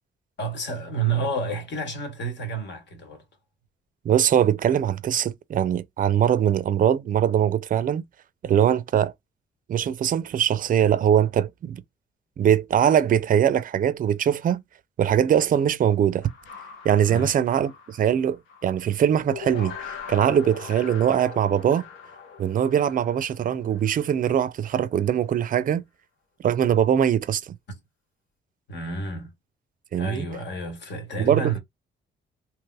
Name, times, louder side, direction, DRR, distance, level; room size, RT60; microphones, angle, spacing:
voice 1, 0.4-3.2 17.1-17.3 28.7-29.3 30.0-31.6, right 4 dB, 65° left, 1.5 m, -29 dB
voice 2, 4.0-8.0 8.4-9.1 9.7-11.8 12.4-14.6 15.0-16.3 16.8-21.8 22.4-25.8 26.4-27.5 29.9-30.3 31.2-31.6, right 9 dB, 45° right, 0.4 m, -22 dB
sound 1, 16.2-18.9 19.3-24.4, left 7 dB, 90° left, 1.0 m, -41 dB
3.2 x 2.9 x 2.2 m
cardioid pair, 90°, 20 cm